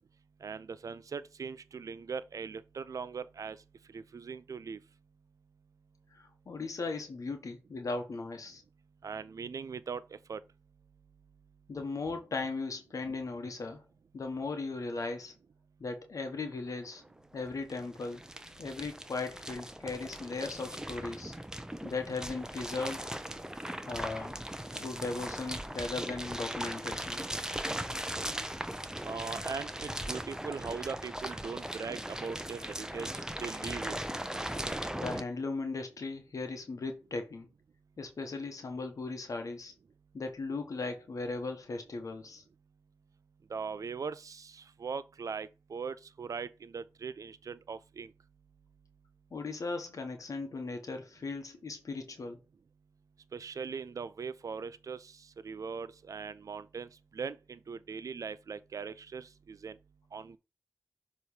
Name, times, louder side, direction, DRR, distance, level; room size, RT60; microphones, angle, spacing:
voice 1, 0.4-3.6 3.9-4.8 9.0-10.0 10.3-10.4 29.0-33.1 33.4-33.9 43.5-48.1 53.3-55.1 55.4-59.8 60.1-60.4, right 5 dB, 85° right, 0.4 m, -40 dB
voice 2, 6.1-8.6 11.7-13.8 14.1-15.3 15.8-17.0 17.3-18.2 18.6-21.3 21.8-23.1 23.9-24.4 24.7-27.2 34.9-37.5 38.0-39.7 40.1-42.4 49.3-52.4, left 3 dB, 85° left, 1.0 m, -37 dB
sound 1, 16.5-16.6 16.8-35.2, right 1 dB, 10° right, 0.7 m, -39 dB
7.1 x 3.1 x 4.8 m
cardioid pair, 40°, 6 cm